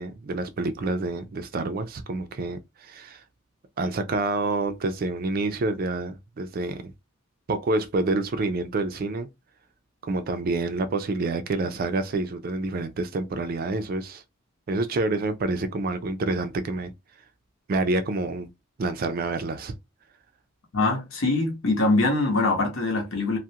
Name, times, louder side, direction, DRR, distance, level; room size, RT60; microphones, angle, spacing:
voice 1, 0.0-3.2 3.8-6.9 7.5-9.3 10.0-14.2 14.7-16.9 17.7-18.5 18.8-19.7, right 2 dB, 45° right, 0.3 m, -28 dB
voice 2, 20.7-23.4, left 2 dB, 65° left, 0.9 m, -23 dB
2.3 x 2.1 x 2.7 m
head